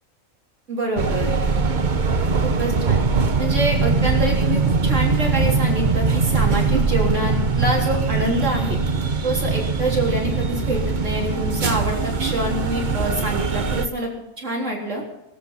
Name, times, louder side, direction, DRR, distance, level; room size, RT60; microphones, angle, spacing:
voice 1, 0.7-1.3 2.4-3.0 3.4-8.8 9.2-14.1 14.4-15.0, right 1 dB, 65° right, -2 dB, 3.9 m, -25 dB
sound 1, 1.0-13.9, right 4 dB, 40° right, 1.1 m, -21 dB
23.0 x 8.6 x 5.6 m, 0.95 s
omnidirectional pair, 1.4 m